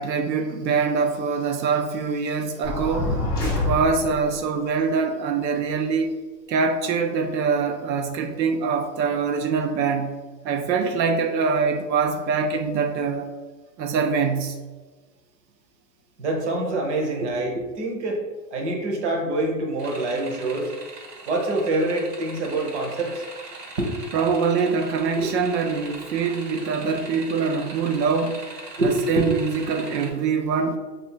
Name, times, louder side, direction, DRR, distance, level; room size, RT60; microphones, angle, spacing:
voice 1, 0.0-3.1 3.4-6.2 6.5-10.2 10.4-13.3 13.8-14.6 24.1-28.4 28.8-30.8, right 5 dB, 85° right, 5 dB, 0.6 m, -24 dB
sound 1, 2.6-4.3, left 2 dB, 10° left, 0.4 m, -26 dB
voice 2, 16.2-18.2 18.5-20.7 21.3-23.2 23.8-23.9 25.1-25.2 28.8-29.3, right 2 dB, 45° right, 1 dB, 0.8 m, -25 dB
sound 2, 19.8-30.1, right 3 dB, 70° right, 1.4 m, -41 dB
3.1 x 2.7 x 4.3 m, 1.3 s
hypercardioid pair, 165°, 50 cm